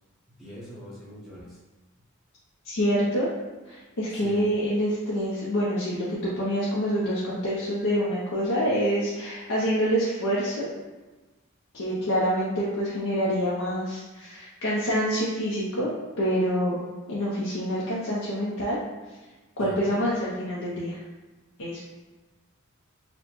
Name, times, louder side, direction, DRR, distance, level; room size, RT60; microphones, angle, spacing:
voice 1, 0.4-1.6 4.1-4.5 19.6-20.1 20.7-20.8, left 1 dB, ahead, -9 dB, 0.9 m, -43 dB
voice 2, 2.6-3.3 3.7-10.7 11.7-15.9 16.2-16.8 17.1-18.8 19.6-21.0 21.6-21.8, equal, 75° left, -7 dB, 0.6 m, -26 dB
4.1 x 2.2 x 2.9 m, 1.2 s
head